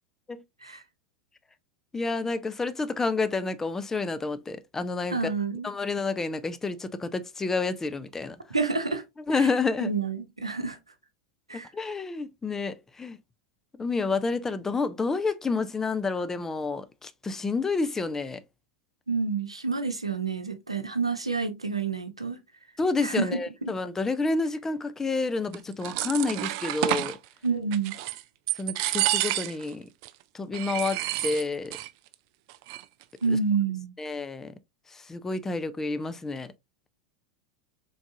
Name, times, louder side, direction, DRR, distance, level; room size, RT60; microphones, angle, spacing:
voice 1, 1.9-5.3 5.6-8.4 9.3-9.9 11.7-13.2 13.8-18.4 22.8-27.2 28.6-29.9 30.3-31.8 33.3-33.4 34.0-34.5 34.9-36.5, left 3 dB, 15° left, 0.5 m, -29 dB
voice 2, 5.1-5.7 8.5-9.0 9.4-9.5 9.8-10.8 11.5-11.7 19.1-22.4 23.0-23.3 23.6-23.7 27.4-27.9 33.2-33.9, right 4 dB, 85° right, 0.7 m, -28 dB
sound 1, 25.5-27.2 27.7-28.2 28.5-29.7 30.0-30.1 30.5-31.9 32.1-32.2 32.5-33.0, right 15 dB, 50° right, 0.4 m, -29 dB
3.9 x 3.5 x 2.7 m
figure-of-eight pair, 85°, 3 cm